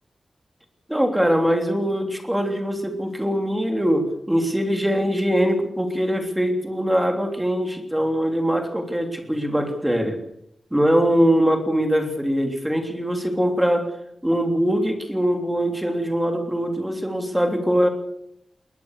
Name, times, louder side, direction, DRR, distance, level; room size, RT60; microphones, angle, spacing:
voice 1, 0.9-10.2 10.7-13.9 14.2-17.9, equal, 5° right, 4 dB, 3.3 m, -22 dB
21.0 x 20.0 x 6.7 m, 0.72 s
wide cardioid pair, 175°, 0 cm